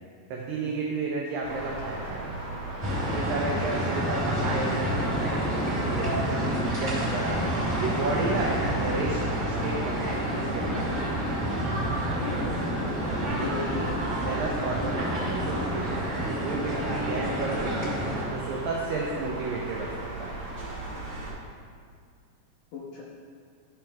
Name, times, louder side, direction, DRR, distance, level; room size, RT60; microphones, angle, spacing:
voice 1, 0.3-2.3 2.9-7.4 7.7-9.2 9.5-11.2 13.2-17.9 18.3-20.4, right 3 dB, 85° right, -2 dB, 2.0 m, -33 dB
sound 1, 1.4-21.3, right 2 dB, 40° right, 2.6 m, -37 dB
sound 2, 2.8-18.2, equal, 25° right, 1.5 m, -29 dB
voice 2, 12.2-12.7 13.4-14.1 20.9-21.0 22.7-23.0, left 6 dB, 75° left, -5 dB, 2.1 m, -37 dB
12.5 x 6.0 x 3.5 m, 2.1 s
omnidirectional pair, 5.1 m